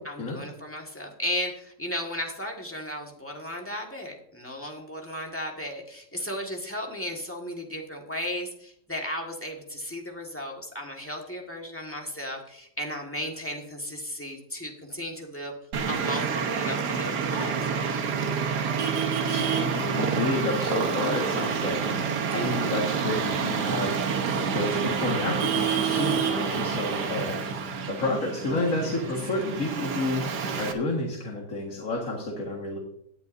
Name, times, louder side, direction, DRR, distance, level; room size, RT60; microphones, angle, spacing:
voice 1, 0.1-15.5 15.9-17.7 22.3-22.8 28.5-28.7, equal, 10° left, 0 dB, 1.6 m, -35 dB
Traffic noise roadway noise, 15.7-30.7, right 6 dB, 80° right, 1.7 m, -28 dB
voice 2, 19.3-24.1 24.5-32.8, left 2 dB, 55° left, -2 dB, 2.1 m, -30 dB
18.0 x 9.3 x 2.7 m, 0.71 s
omnidirectional pair, 1.7 m